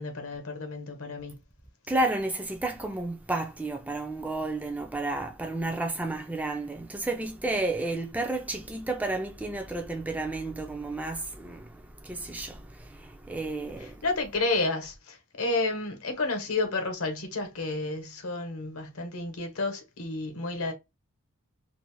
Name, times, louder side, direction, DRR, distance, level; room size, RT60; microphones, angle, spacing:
voice 1, 0.0-1.4 13.8-20.7, left 3 dB, 75° left, 0.9 m, -31 dB
voice 2, 1.9-14.0, right 2 dB, 5° right, 0.3 m, -32 dB
2.5 x 2.0 x 2.9 m
head